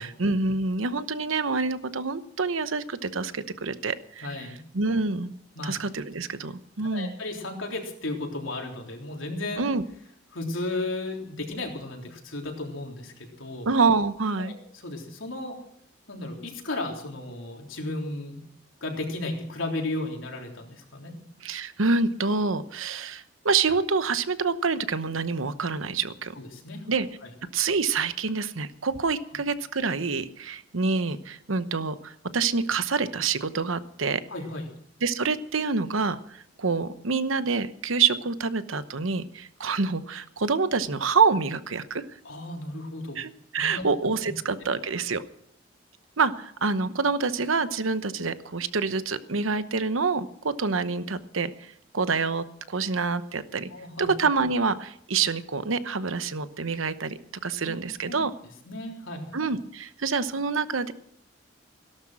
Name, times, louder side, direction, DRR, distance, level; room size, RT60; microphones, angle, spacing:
voice 1, 0.0-4.5 4.7-5.4 5.6-7.1 9.6-9.8 13.7-14.5 21.4-26.3 26.9-27.1 27.5-34.2 35.0-42.0 43.2-45.2 46.2-53.7 54.0-58.3 59.3-60.9, right 4 dB, 85° right, 12 dB, 1.0 m, -27 dB
voice 2, 4.2-4.6 5.6-5.7 6.9-9.6 10.3-13.7 14.4-14.6 14.8-15.6 16.1-18.4 18.8-21.1 26.4-26.9 27.2-27.3 34.3-34.6 42.2-43.2 43.7-43.8 44.6-44.7 53.7-54.1 57.6-58.2 58.7-59.3, left 2 dB, 80° left, 1 dB, 3.6 m, -34 dB
17.5 x 12.0 x 6.3 m, 0.68 s
head